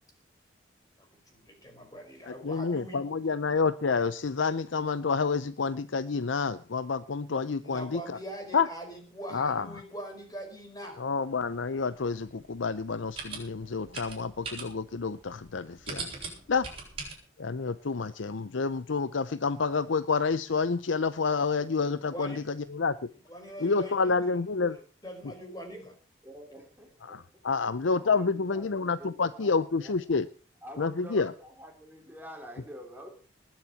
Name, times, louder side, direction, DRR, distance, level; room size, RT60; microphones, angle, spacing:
voice 1, 1.0-3.0 7.6-11.0 22.1-22.5 23.3-24.2 24.6-24.7 25.0-25.9, equal, 20° left, 3 dB, 4.8 m, -42 dB
voice 2, 2.3-8.2 8.5-8.7 9.3-9.7 11.0-16.1 16.5-16.7 17.4-23.0 23.6-24.7 27.1-30.3 30.8-31.3, left 4 dB, 70° left, 14 dB, 0.6 m, -29 dB
sound 1, 11.3-17.1, right 4 dB, 30° right, 6.6 m, -42 dB
voice 3, 26.2-27.6 27.9-30.0 30.6-33.1, equal, 10° right, 2 dB, 3.1 m, -47 dB
20.0 x 7.4 x 7.1 m, 0.40 s
head